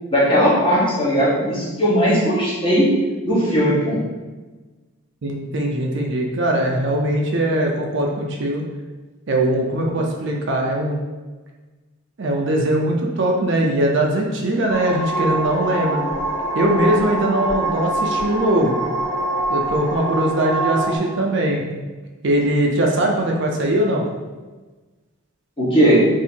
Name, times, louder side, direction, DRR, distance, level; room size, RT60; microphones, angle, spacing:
voice 1, 0.1-2.9 3.2-4.0 25.6-26.0, equal, 25° left, -7 dB, 1.0 m, -17 dB
voice 2, 5.2-8.6 9.3-11.0 12.2-16.0 16.5-18.8 19.5-21.6 22.2-24.0, right 1 dB, 55° right, 0 dB, 0.5 m, -21 dB
sound 1, 14.7-21.0, right 2 dB, 50° left, 0.8 m, -24 dB
2.7 x 2.7 x 4.3 m, 1.3 s
head